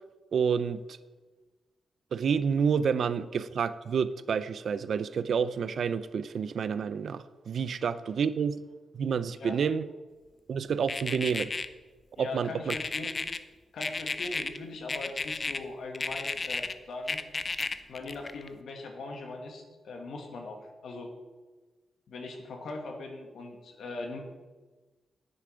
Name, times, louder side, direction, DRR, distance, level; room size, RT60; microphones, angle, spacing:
voice 1, 0.3-1.0 2.1-8.6 8.9-9.8 10.5-11.5 12.2-12.7, right 6 dB, 60° right, 14 dB, 0.4 m, -29 dB
sound 1, 10.9-11.7 12.7-13.4 13.8-14.6 14.9-15.6 15.9-16.7 17.1-18.5, left 4 dB, 30° left, 0.5 m, -32 dB
voice 2, 12.1-13.1 13.7-17.2 17.9-21.1 22.1-24.2, left 3 dB, 70° left, 2 dB, 1.7 m, -40 dB
10.0 x 9.7 x 5.0 m, 1.2 s
wide cardioid pair, 160°, 0 cm